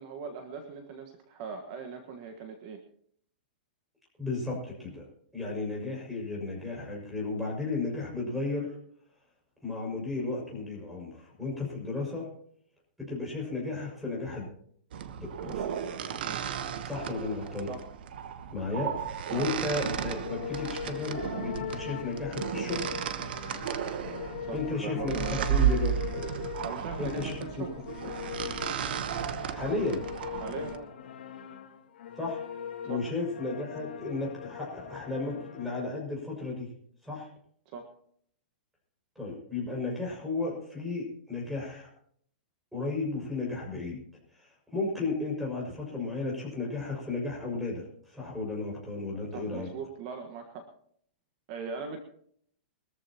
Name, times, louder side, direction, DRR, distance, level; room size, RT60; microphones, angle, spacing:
voice 1, 0.0-2.8 16.2-16.4 17.6-17.8 19.3-19.5 24.4-25.5 26.6-27.8 30.4-30.9 32.9-33.0 37.7-37.9 49.3-50.7 51.5-52.0, right 5 dB, 40° right, 5 dB, 1.5 m, -40 dB
voice 2, 4.2-8.8 9.6-12.3 13.0-14.5 15.4-15.7 16.8-17.7 18.5-18.9 19.3-23.0 24.5-25.2 25.5-26.1 27.0-27.4 29.5-30.0 32.2-32.4 32.8-36.7 37.0-37.3 39.2-41.9 42.7-44.0 44.3-49.7, left 3 dB, ahead, -2 dB, 6.1 m, -34 dB
sound 1, 14.9-30.8, right 8 dB, 65° right, 1.1 m, -34 dB
sound 2, 20.2-35.8, left 9 dB, 85° left, 2.2 m, -41 dB
23.0 x 14.0 x 3.0 m, 0.65 s
supercardioid pair, 160°, 6 cm